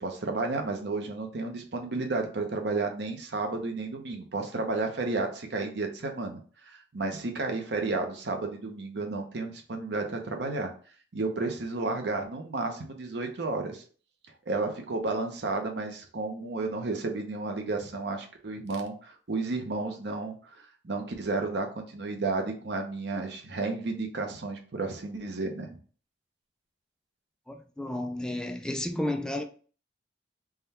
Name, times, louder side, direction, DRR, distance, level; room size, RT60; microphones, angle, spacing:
voice 1, 0.0-6.4 6.7-10.7 11.1-13.8 14.5-25.7, right 3 dB, 70° right, 0.7 m, -32 dB
voice 2, 27.5-29.4, left 1 dB, 5° left, 0.3 m, -32 dB
3.5 x 2.3 x 4.2 m
head